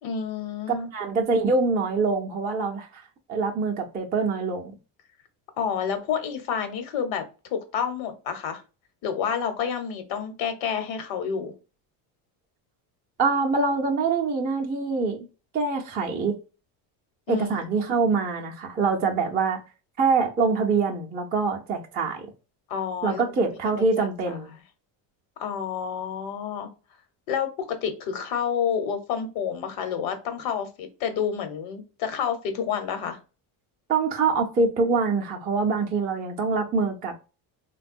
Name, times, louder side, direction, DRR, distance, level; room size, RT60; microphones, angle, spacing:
voice 1, 0.0-0.9 5.6-7.2 7.5-8.6 9.0-11.5 17.3-17.5 22.7-24.4 25.4-26.7 27.3-33.2, left 7 dB, 80° left, 1.0 m, -29 dB
voice 2, 0.7-3.0 3.3-4.7 13.2-15.3 15.5-16.4 17.3-19.6 20.0-22.2 23.0-24.5 33.9-37.1, right 4 dB, 20° right, 0.4 m, -24 dB
3.4 x 2.2 x 2.5 m
cardioid pair, 150°, 46 cm